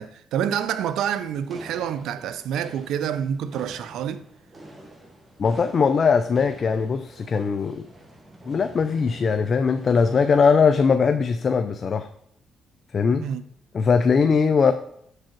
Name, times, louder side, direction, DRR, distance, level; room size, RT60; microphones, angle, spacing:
voice 1, 0.0-4.2 13.2-13.4, right 9 dB, 80° right, 0.4 m, -27 dB
sound 1, 1.1-10.7, right 1 dB, 20° right, 1.6 m, -46 dB
voice 2, 5.4-7.9 8.5-12.1 12.9-13.3 13.7-14.7, left 5 dB, 45° left, 0.4 m, -20 dB
7.4 x 4.8 x 4.5 m
cardioid pair, 90°, 0 cm